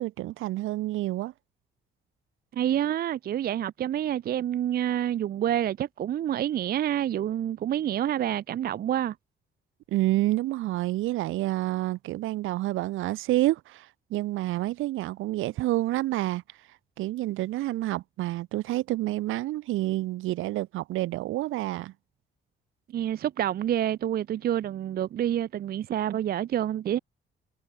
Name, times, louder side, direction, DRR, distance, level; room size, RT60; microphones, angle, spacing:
voice 1, 0.0-1.3 9.9-16.4 17.0-21.9, right 16 dB, 90° right, 1.3 m, -28 dB
voice 2, 2.5-9.2 22.9-27.0, right 11 dB, 50° right, 0.5 m, -28 dB
cardioid pair, 90°, 20 cm